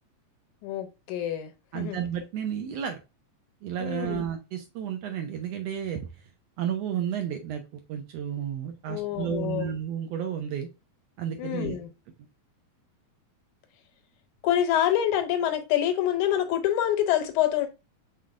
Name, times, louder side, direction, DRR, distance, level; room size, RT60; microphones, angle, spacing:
voice 1, 0.6-2.0 3.8-4.2 8.9-9.7 11.4-11.9 14.4-17.7, left 11 dB, 85° left, 2.1 m, -26 dB
voice 2, 1.7-3.0 3.6-6.1 6.6-10.7 11.2-11.8, right 8 dB, 75° right, 1.6 m, -32 dB
5.7 x 3.5 x 2.4 m
omnidirectional pair, 3.4 m